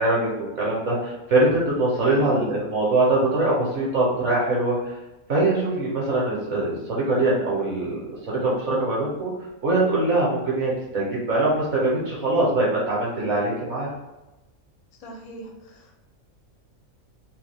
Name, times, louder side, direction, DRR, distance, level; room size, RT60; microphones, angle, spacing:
voice 1, 0.0-5.0 5.3-8.0 8.3-9.3 9.6-13.9, right 2 dB, 60° right, -4 dB, 1.0 m, -23 dB
voice 2, 1.9-2.5 15.0-16.0, right 1 dB, 85° left, 1 dB, 1.1 m, -39 dB
2.8 x 2.2 x 3.3 m, 1.0 s
omnidirectional pair, 1.5 m